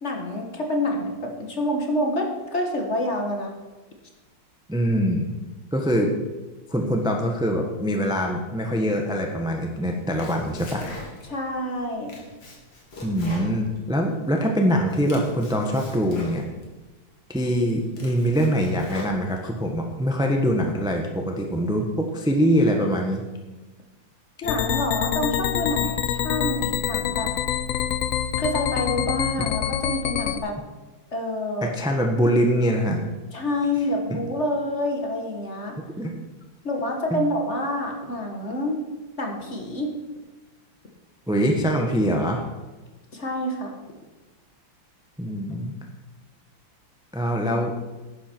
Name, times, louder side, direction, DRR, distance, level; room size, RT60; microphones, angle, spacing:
voice 1, 0.0-3.5 11.2-12.2 24.4-27.3 28.4-30.6 31.1-31.7 33.3-35.8 36.6-38.8 39.2-39.9 43.1-43.8, left 1 dB, 40° left, 2 dB, 1.7 m, -27 dB
voice 2, 4.7-5.3 5.7-6.1 6.7-10.8 13.0-16.4 17.3-23.2 31.6-33.0 35.9-36.1 37.1-37.2 41.3-42.4 45.2-45.7 47.1-47.8, equal, 5° right, 2 dB, 0.9 m, -23 dB
Domestic sounds home sounds, 9.9-11.4 11.8-14.3 14.7-16.7 17.2-17.3 17.7-19.7, left 1 dB, 55° left, 2.8 m, -42 dB
sound 1, 24.4-30.4, left 10 dB, 90° left, 0.7 m, -26 dB
12.0 x 10.0 x 4.5 m, 1.2 s
omnidirectional pair, 2.1 m